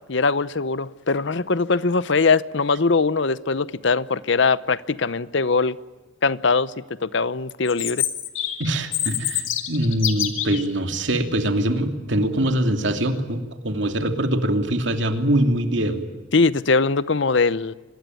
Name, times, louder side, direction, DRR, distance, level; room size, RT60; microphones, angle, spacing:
voice 1, 0.1-5.8 6.2-6.7 7.0-8.1 16.3-17.7, left 4 dB, 60° left, 0.8 m, -21 dB
Chirp tweet, 7.7-10.6, left 11 dB, 80° left, 2.5 m, -26 dB
voice 2, 8.6-16.1, right 1 dB, 65° right, 2.8 m, -23 dB
25.0 x 21.0 x 9.4 m
head